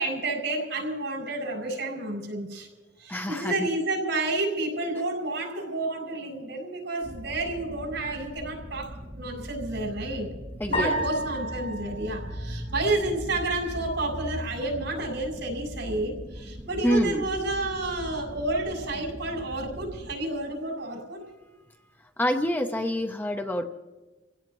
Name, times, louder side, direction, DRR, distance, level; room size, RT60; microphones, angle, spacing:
voice 1, 0.0-2.7 3.0-10.3 10.7-21.2, right 2 dB, 80° right, -2 dB, 6.6 m, -30 dB
voice 2, 3.1-3.7 10.6-11.0 16.8-17.3 22.2-23.6, equal, 10° left, 5 dB, 0.7 m, -27 dB
dark ambient underwater deep, 7.0-20.1, equal, 30° right, 1.8 m, -39 dB
sound 1, 10.7-13.2, equal, 40° left, 7.1 m, -32 dB
27.5 x 17.0 x 3.1 m, 1.2 s
head